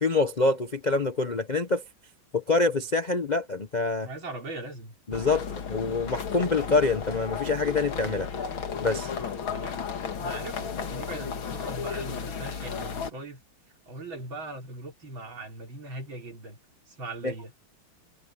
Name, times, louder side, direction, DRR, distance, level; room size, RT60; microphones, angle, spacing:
voice 1, 0.0-1.8 2.3-4.1 5.1-8.3 8.8-9.1 17.2-17.3, left 3 dB, 40° left, 0.6 m, -26 dB
voice 2, 4.0-4.9 9.5-9.8 10.1-13.4 13.9-16.6 16.9-17.5, right 2 dB, 75° right, 4.6 m, -40 dB
sound 1, 5.1-13.1, left 6 dB, 80° left, 2.6 m, -34 dB
omnidirectional pair, 2.2 m